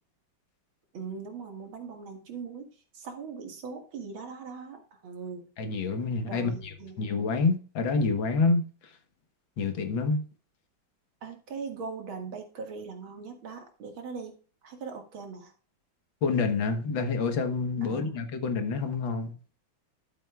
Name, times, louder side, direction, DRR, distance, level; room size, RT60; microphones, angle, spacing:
voice 1, 0.9-5.5 6.2-7.1 11.2-14.4 14.6-15.5 17.8-18.2, right 5 dB, 75° right, 2.6 m, -40 dB
voice 2, 5.6-8.7 9.6-10.2 16.2-19.3, left 4 dB, 70° left, 2.0 m, -27 dB
11.5 x 7.9 x 2.4 m
omnidirectional pair, 2.2 m